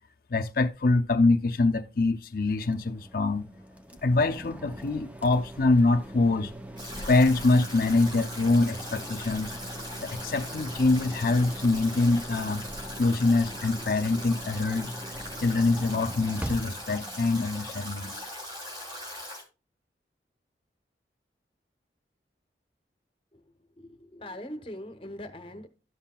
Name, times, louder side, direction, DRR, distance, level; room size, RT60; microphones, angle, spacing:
voice 1, 0.3-3.5 4.0-6.5 7.1-9.5 10.0-12.6 13.0-14.9 15.4-18.3, left 3 dB, 50° left, 0.5 m, -24 dB
sound 1, 2.6-17.8, right 1 dB, 10° right, 0.5 m, -42 dB
Stream / Drip / Trickle dribble, 6.8-19.4, left 1 dB, 25° right, 2.7 m, -40 dB
voice 2, 23.8-25.7, left 1 dB, 30° left, 0.9 m, -41 dB
12.5 x 5.7 x 2.2 m
head